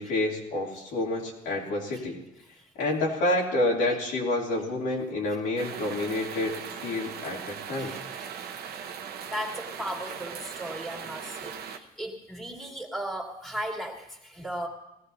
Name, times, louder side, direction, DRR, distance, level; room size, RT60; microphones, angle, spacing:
voice 1, 0.0-2.2 2.7-8.0, left 2 dB, 85° left, -3 dB, 3.1 m, -28 dB
sound 1, 5.6-11.8, right 7 dB, 70° right, 1.1 m, -39 dB
voice 2, 7.8-8.6 9.3-14.7, equal, ahead, -1 dB, 2.6 m, -37 dB
20.0 x 15.5 x 2.8 m, 0.87 s
cardioid pair, 110°, 17 cm